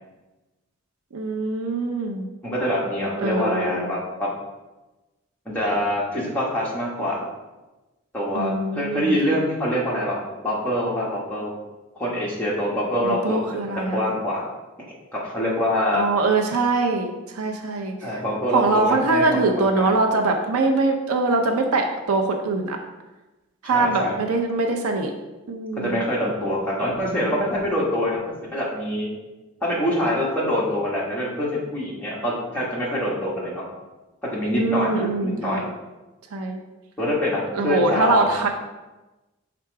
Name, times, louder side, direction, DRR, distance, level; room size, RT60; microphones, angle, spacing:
voice 1, 1.1-2.3 3.2-3.9 8.3-9.1 13.0-14.0 15.9-18.2 18.5-22.8 23.6-25.1 25.5-26.0 34.6-35.7 36.3-36.6 37.5-38.6, right 3 dB, 85° right, 3 dB, 0.6 m, -23 dB
voice 2, 2.4-4.3 5.4-7.3 8.1-11.5 11.9-14.4 15.1-16.1 18.0-20.0 23.6-24.2 25.8-28.2 28.5-29.1 29.6-33.6 34.3-35.6 37.0-38.3, left 1 dB, 5° left, -6 dB, 1.3 m, -25 dB
5.9 x 3.8 x 4.6 m, 1.1 s
head